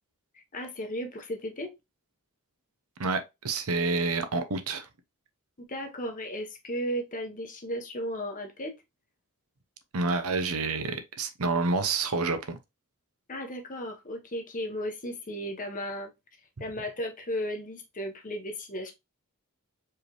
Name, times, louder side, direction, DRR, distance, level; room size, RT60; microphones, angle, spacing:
voice 1, 0.5-1.7 5.6-8.8 13.3-16.1 16.6-18.9, equal, 35° left, 1.0 m, -35 dB
voice 2, 3.0-4.9 9.9-12.6, right 3 dB, 70° right, 0.8 m, -28 dB
4.7 x 3.3 x 3.0 m
head